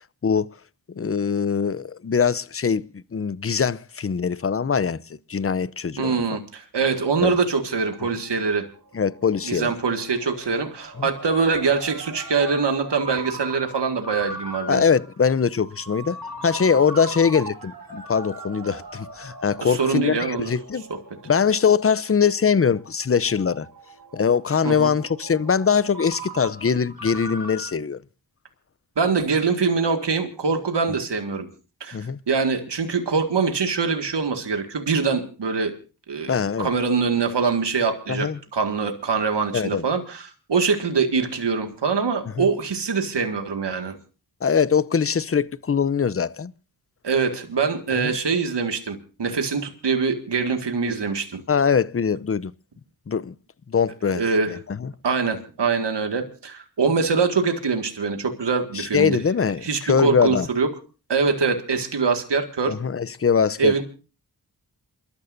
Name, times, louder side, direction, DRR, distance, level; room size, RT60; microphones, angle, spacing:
voice 1, 0.9-5.0 5.3-6.2 7.2-7.4 8.9-9.7 11.0-11.1 14.7-20.9 21.3-23.7 24.1-28.0 31.9-32.2 36.3-36.7 38.1-38.4 39.5-39.8 42.4-42.5 44.4-46.5 47.9-48.2 51.5-52.5 53.1-53.3 53.7-54.9 58.7-60.5 62.7-63.8, left 6 dB, 35° left, 0.6 m, -22 dB
voice 2, 6.0-8.7 9.4-14.8 19.6-20.5 20.9-21.0 24.6-24.9 29.0-31.5 31.8-32.0 32.3-35.7 36.1-44.0 47.0-51.4 54.1-54.6 55.0-59.2 59.6-60.7 61.1-62.8 63.6-63.8, right 5 dB, 80° right, 1.9 m, -23 dB
Ringtone, 8.0-27.7, right 2 dB, 55° right, 3.1 m, -40 dB
28.0 x 13.0 x 2.6 m
cardioid pair, 40°, 41 cm